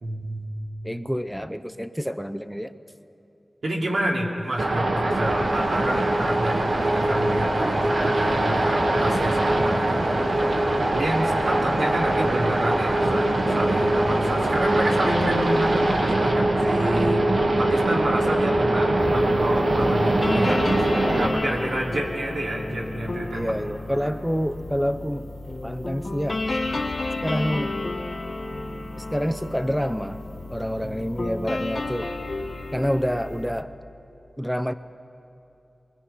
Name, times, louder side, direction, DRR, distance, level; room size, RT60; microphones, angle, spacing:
voice 1, 0.0-0.7 3.6-17.2 17.6-20.6 21.2-23.5 24.0-24.1, right 1 dB, 85° right, -2 dB, 2.8 m, -29 dB
voice 2, 0.8-2.7 20.4-20.7 21.0-21.7 23.3-25.3 25.6-26.5 27.2-27.8 29.0-30.2 30.5-32.1 32.7-33.7 34.4-34.7, equal, ahead, 11 dB, 0.5 m, -28 dB
sound 1, 4.6-21.3, right 2 dB, 70° right, 1.6 m, -23 dB
sound 2, 5.0-16.8, equal, 45° right, 3.2 m, -31 dB
sound 3, 19.0-33.6, left 2 dB, 40° left, 1.1 m, -32 dB
22.5 x 21.5 x 5.6 m, 2.8 s
wide cardioid pair, 95°, 0 cm